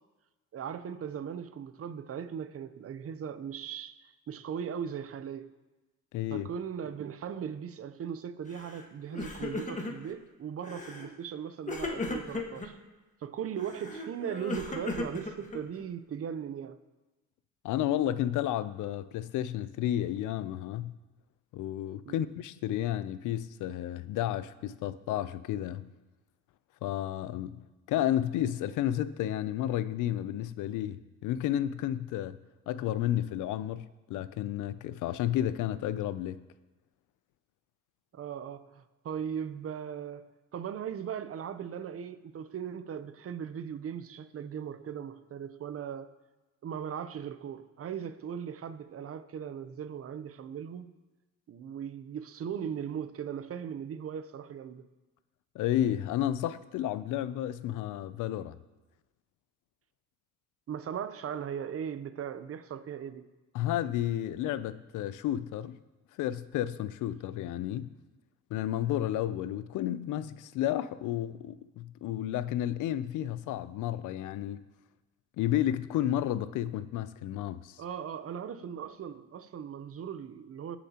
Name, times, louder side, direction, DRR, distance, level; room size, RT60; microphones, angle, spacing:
voice 1, 0.5-5.5 6.3-12.8 13.2-16.8 22.0-22.3 38.1-40.3 40.5-46.1 46.6-50.9 51.5-54.9 60.7-63.2 77.8-80.8, right 8 dB, 50° right, 0.7 m, -38 dB
voice 2, 6.1-6.5 17.6-21.0 21.5-25.9 26.8-32.4 32.7-36.4 55.5-58.6 63.5-65.8 66.2-67.9 68.5-74.6 75.4-77.8, left 12 dB, 85° left, 0.5 m, -32 dB
Crying sobbing, 8.5-8.8 9.1-10.1 10.6-11.1 11.7-12.7 13.6-15.8, left 2 dB, 25° left, 1.5 m, -36 dB
19.5 x 7.0 x 2.9 m
cardioid pair, 90°, 30 cm